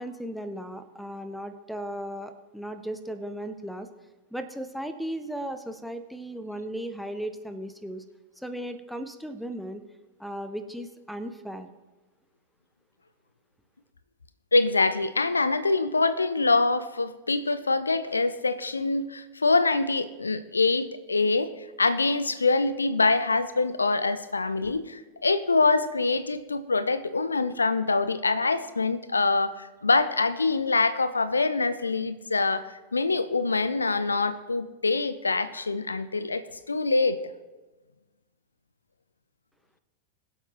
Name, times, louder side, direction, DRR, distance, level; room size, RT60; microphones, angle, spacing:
voice 1, 0.0-3.9 4.3-8.0 8.4-9.8 10.2-11.7, right 1 dB, ahead, 11 dB, 0.8 m, -36 dB
voice 2, 14.5-21.5 21.8-37.2, left 3 dB, 80° left, 15 dB, 0.5 m, -25 dB
22.0 x 7.9 x 3.0 m, 1.2 s
figure-of-eight pair, 90°, 0 cm